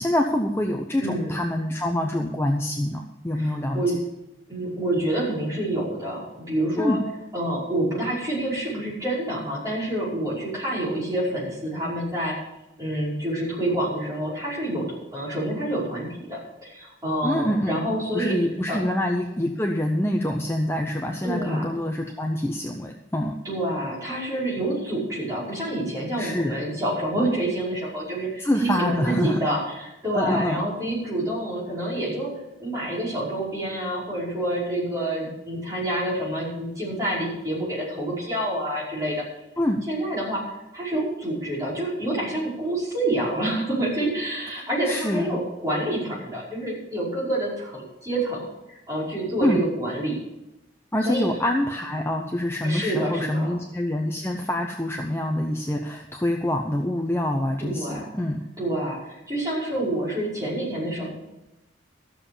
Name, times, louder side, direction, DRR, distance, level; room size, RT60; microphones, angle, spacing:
voice 1, 0.0-3.8 6.8-7.0 17.2-17.8 18.1-23.4 26.2-26.6 28.4-29.5 30.1-30.6 39.6-39.8 44.8-45.4 49.4-49.6 50.9-58.4, left 1 dB, 15° left, 2 dB, 0.7 m, -25 dB
voice 2, 1.0-1.5 3.3-3.9 4.5-7.0 7.3-12.4 12.8-18.3 18.7-18.8 21.2-21.7 23.4-32.3 32.6-39.2 39.9-40.4 40.7-50.2 51.0-51.3 52.6-53.5 57.6-58.1 58.6-61.1, right 1 dB, 15° right, -7 dB, 5.4 m, -27 dB
13.5 x 7.2 x 7.0 m, 0.91 s
head